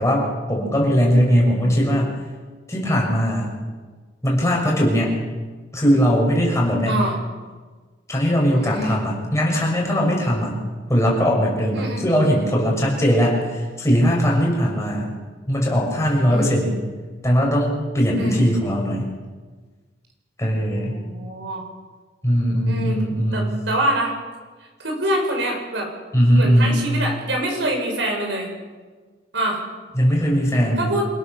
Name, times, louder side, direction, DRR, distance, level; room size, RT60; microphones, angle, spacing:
voice 1, 0.0-2.1 2.7-3.5 4.2-5.2 5.7-7.0 8.1-10.6 10.9-13.4 13.8-15.1 15.5-16.8 17.2-19.1 20.4-21.0 22.2-23.5 26.1-26.8 29.9-30.9, equal, 15° left, -2 dB, 6.8 m, -19 dB
voice 2, 6.9-7.2 8.5-9.0 11.7-12.1 16.3-16.7 18.2-18.5 20.7-21.6 22.6-23.0 23.3-24.1 24.8-25.9 26.3-28.5 29.3-29.6 30.8-31.1, right 1 dB, 75° right, 2 dB, 6.5 m, -25 dB
27.5 x 18.0 x 7.0 m, 1.4 s
head